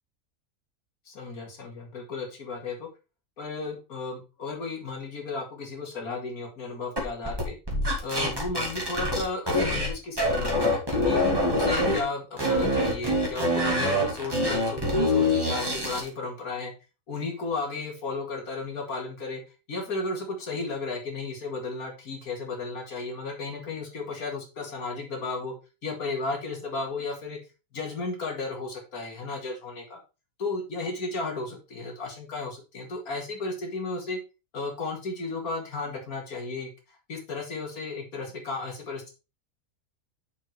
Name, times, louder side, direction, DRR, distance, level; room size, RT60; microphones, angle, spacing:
voice 1, 1.1-2.9 3.4-7.6 8.0-11.2 11.5-16.7 17.1-19.4 19.7-25.5 25.8-27.4 27.7-30.0 30.4-34.2 34.5-36.7 37.1-39.1, left 3 dB, 85° left, 2 dB, 2.5 m, -34 dB
sound 1, 7.0-9.9 10.2-12.0 12.4-16.1, left 1 dB, 15° right, 2.5 m, -25 dB
6.8 x 5.8 x 4.5 m, 0.30 s
omnidirectional pair, 1.5 m